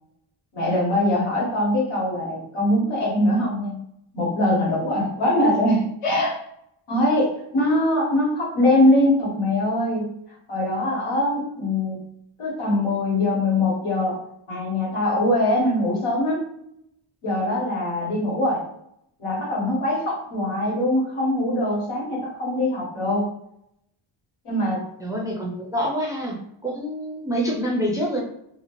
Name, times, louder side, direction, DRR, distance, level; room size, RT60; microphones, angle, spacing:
voice 1, 0.5-3.8 4.1-6.4 6.9-10.1 10.5-12.0 12.4-14.2 14.5-16.4 17.2-18.6 19.2-23.3 24.4-24.8, left 1 dB, 90° left, -2 dB, 1.1 m, -22 dB
voice 2, 25.0-28.2, equal, 10° right, -3 dB, 0.3 m, -26 dB
2.7 x 2.1 x 2.9 m, 0.76 s
wide cardioid pair, 170°, 49 cm